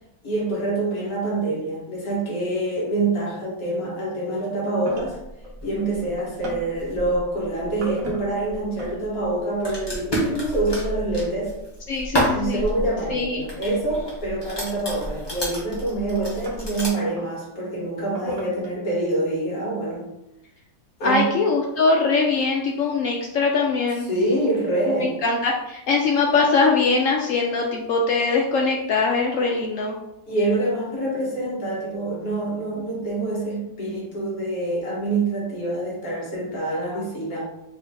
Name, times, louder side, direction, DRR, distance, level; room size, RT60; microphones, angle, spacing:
voice 1, 0.2-5.2 5.6-11.5 12.3-20.1 21.0-21.3 24.1-25.1 30.3-37.4, right 2 dB, 55° left, -5 dB, 1.7 m, -26 dB
sound 1, 0.6-0.7 2.8-3.2 3.5-3.8 4.3-9.0 10.1-10.6 12.6-12.7 14.9-15.0 15.8-17.3 18.0-18.7, equal, 55° right, 1.2 m, -39 dB
sound 2, 5.0-16.9, equal, 25° left, 0.5 m, -31 dB
voice 2, 11.9-12.6 13.1-13.4 21.0-24.1 25.0-30.0, left 4 dB, 80° left, 0 dB, 0.7 m, -22 dB
3.8 x 2.6 x 3.4 m, 0.88 s
omnidirectional pair, 1.9 m